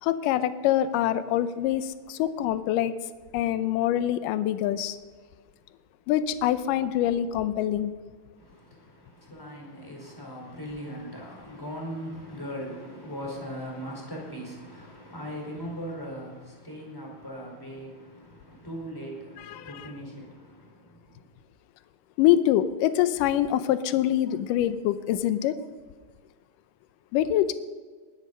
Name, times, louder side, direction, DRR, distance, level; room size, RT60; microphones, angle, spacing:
voice 1, 0.0-2.9 3.3-5.0 6.1-7.9 19.4-19.9 22.2-25.6 27.1-27.5, left 12 dB, 85° left, 12 dB, 1.9 m, -25 dB
voice 2, 8.4-21.3, equal, 5° left, -2 dB, 4.1 m, -39 dB
21.0 x 11.0 x 5.5 m, 1.5 s
omnidirectional pair, 4.6 m